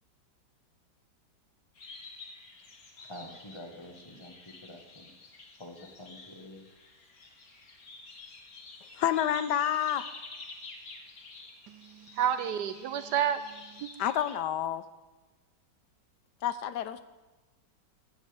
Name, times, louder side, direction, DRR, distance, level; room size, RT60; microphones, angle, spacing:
sound 1, 1.8-14.4, left 3 dB, 55° left, 2.1 m, -49 dB
voice 1, 3.0-5.1 5.6-6.7, left 1 dB, 15° left, 3 dB, 1.5 m, -47 dB
voice 2, 9.0-10.1 14.0-14.8 16.4-17.0, left 10 dB, 80° left, 13 dB, 1.2 m, -29 dB
voice 3, 11.7-13.9, right 9 dB, 75° right, 12 dB, 1.2 m, -31 dB
16.5 x 14.0 x 3.6 m, 1.2 s
omnidirectional pair, 1.9 m